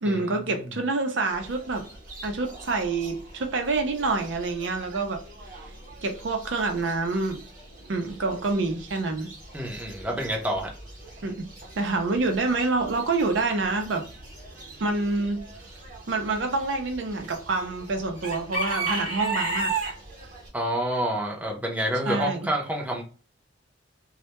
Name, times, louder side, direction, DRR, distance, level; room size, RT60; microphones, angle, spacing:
voice 1, 0.0-1.9 2.2-5.2 6.0-7.4 7.9-9.3 11.2-11.5 11.8-14.1 14.8-15.4 16.1-19.9 22.1-22.5, right 3 dB, 70° right, 0.5 m, -27 dB
Chicken rooster / Bird, 1.3-20.5, right 3 dB, 45° right, 0.8 m, -38 dB
voice 2, 9.5-10.7 20.5-23.0, right 1 dB, 10° right, 0.5 m, -28 dB
2.1 x 2.1 x 2.8 m
head